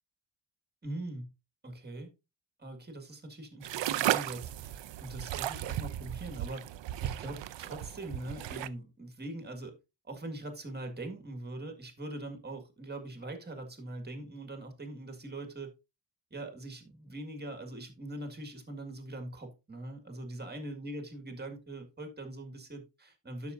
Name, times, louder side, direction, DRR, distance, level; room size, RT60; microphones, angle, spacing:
voice 1, 0.8-1.3 1.6-2.1 2.6-6.7 7.0-9.7 10.0-15.7 16.3-23.5, right 1 dB, 25° right, 6 dB, 1.8 m, -42 dB
sound 1, 3.6-8.7, right 13 dB, 90° right, 0.6 m, -35 dB
11.5 x 6.1 x 2.6 m, 0.26 s
wide cardioid pair, 150°, 43 cm